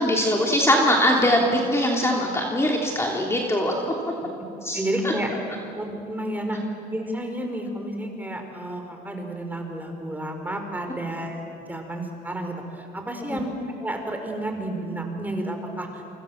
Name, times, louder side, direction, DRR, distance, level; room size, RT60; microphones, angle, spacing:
voice 1, 0.0-3.7 4.6-4.8 5.0-5.1 13.3-13.4, left 1 dB, 15° left, -1 dB, 3.1 m, -21 dB
voice 2, 4.7-5.3 5.7-6.6 6.9-11.4 11.7-13.5 13.8-16.0, right 1 dB, 10° right, 4 dB, 4.8 m, -31 dB
30.0 x 26.0 x 7.3 m, 2.8 s
cardioid pair, 110°, 17 cm